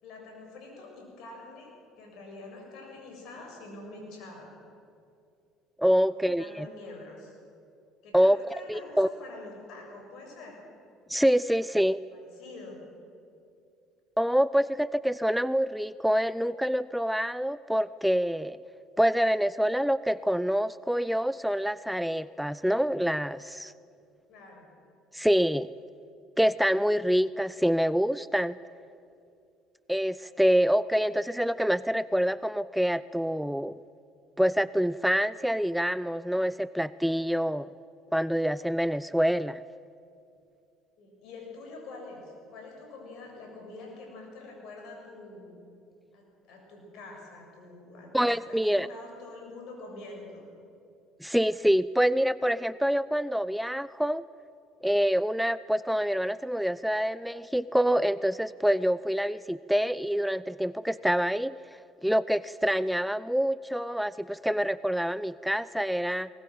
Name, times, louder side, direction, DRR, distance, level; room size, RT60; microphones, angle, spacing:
voice 1, 0.0-1.7 2.0-4.5 6.1-7.4 8.0-10.6 12.1-12.8 24.3-24.7 41.0-45.5 46.1-50.5, left 2 dB, 65° left, 1 dB, 7.0 m, -46 dB
voice 2, 5.8-6.7 8.1-8.4 8.7-9.1 11.1-12.0 14.2-18.6 19.0-23.7 25.1-25.7 26.4-28.6 29.9-33.8 34.4-37.7 38.1-39.6 48.1-48.9 51.2-54.2 54.8-61.6 62.0-66.3, equal, ahead, 17 dB, 0.4 m, -26 dB
20.0 x 20.0 x 7.8 m, 2.5 s
hypercardioid pair, 65°, 0 cm